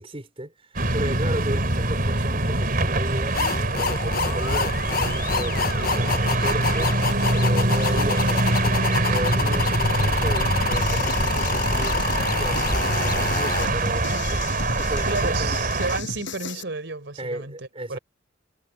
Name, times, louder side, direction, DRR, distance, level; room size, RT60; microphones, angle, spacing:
voice 1, 0.0-12.0 12.4-15.6 17.2-18.0, right 1 dB, 30° right, 4.5 m, -34 dB
sound 1, 0.7-16.0, right 2 dB, 50° right, 3.9 m, -24 dB
sound 2, 3.3-13.7, left 5 dB, 50° left, 1.0 m, -28 dB
sound 3, 10.7-16.6, left 4 dB, 70° left, 7.2 m, -36 dB
voice 2, 15.0-18.0, right 3 dB, 65° right, 4.2 m, -32 dB
head